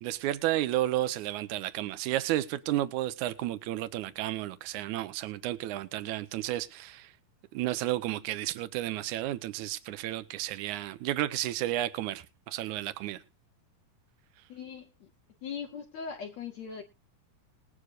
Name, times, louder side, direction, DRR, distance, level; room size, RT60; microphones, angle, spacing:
voice 1, 0.0-7.1 7.5-13.2, right 14 dB, 70° right, 2.0 m, -32 dB
voice 2, 14.5-15.1 15.4-16.8, left 6 dB, 60° left, 2.1 m, -40 dB
20.5 x 9.8 x 2.5 m
omnidirectional pair, 4.3 m